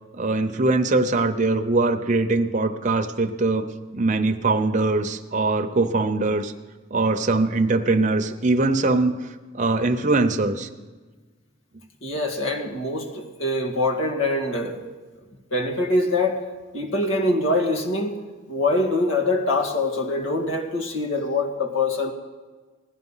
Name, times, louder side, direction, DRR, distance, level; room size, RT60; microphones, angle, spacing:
voice 1, 0.1-3.7 3.9-6.5 6.9-9.1 9.5-10.7, right 3 dB, 40° right, 5 dB, 0.8 m, -22 dB
voice 2, 12.0-14.9 15.5-16.4 16.7-18.2 18.5-22.1, left 2 dB, 80° left, 2 dB, 1.9 m, -24 dB
17.0 x 11.0 x 5.6 m, 1.3 s
head